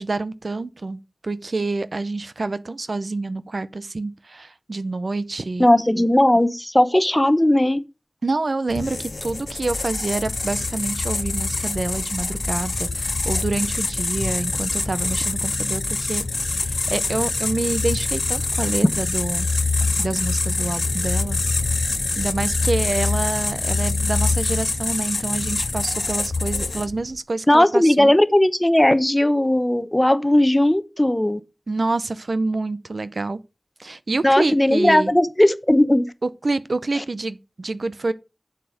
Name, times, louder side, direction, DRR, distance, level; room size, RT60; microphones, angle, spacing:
voice 1, 0.0-5.7 5.9-6.1 8.2-16.2 16.6-19.5 20.0-21.4 22.2-28.1 31.7-33.4 33.8-35.1 36.2-38.1, right 3 dB, 85° right, 0.7 m, -27 dB
voice 2, 5.6-7.8 27.5-31.4 34.2-36.0 37.0-37.1, left 1 dB, 20° left, 0.9 m, -17 dB
sound 1, 8.7-27.1, left 3 dB, 75° left, 0.6 m, -25 dB
7.7 x 6.7 x 5.0 m
wide cardioid pair, 60°, 0 cm